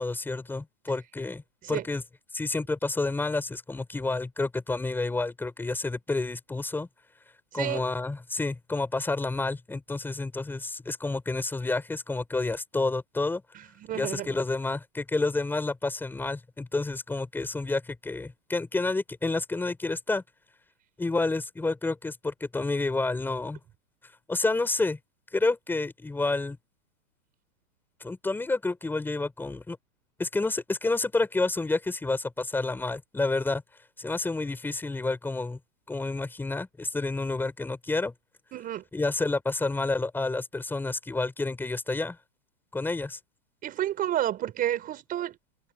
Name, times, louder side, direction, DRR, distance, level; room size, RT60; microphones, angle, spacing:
voice 1, 0.0-1.4 1.7-2.0 2.3-6.9 7.5-13.4 13.9-20.2 21.0-23.6 24.3-25.0 25.3-26.6 28.0-29.8 30.2-33.6 34.0-35.6 35.9-38.1 38.9-42.2 42.7-43.2, left 3 dB, 5° left, 5.8 m, -29 dB
voice 2, 7.5-7.8 13.5-14.3 38.5-38.8 43.6-45.4, right 12 dB, 20° right, 5.7 m, -30 dB
hypercardioid pair, 165°, 42 cm